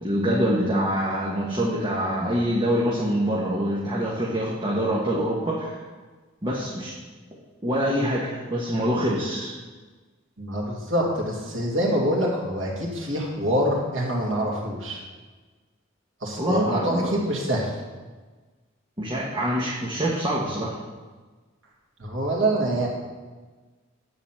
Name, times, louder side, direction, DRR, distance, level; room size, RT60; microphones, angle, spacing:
voice 1, 0.0-5.8 6.4-6.9 7.6-9.5 16.4-17.1 19.0-20.7, equal, 25° right, -5 dB, 1.2 m, -25 dB
voice 2, 10.4-15.0 16.2-17.7 22.0-22.9, right 1 dB, 75° right, -3 dB, 2.6 m, -25 dB
10.0 x 4.1 x 7.5 m, 1.3 s
head